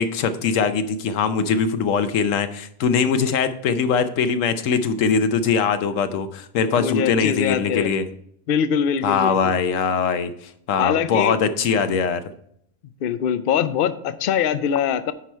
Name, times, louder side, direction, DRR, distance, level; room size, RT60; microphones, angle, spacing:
voice 1, 0.0-8.0 9.0-12.2, left 6 dB, 85° left, 10 dB, 1.1 m, -21 dB
voice 2, 6.8-7.9 8.5-9.6 10.8-11.3 13.0-15.1, left 8 dB, 55° left, 12 dB, 0.6 m, -23 dB
9.9 x 4.8 x 4.3 m, 0.69 s
omnidirectional pair, 1.3 m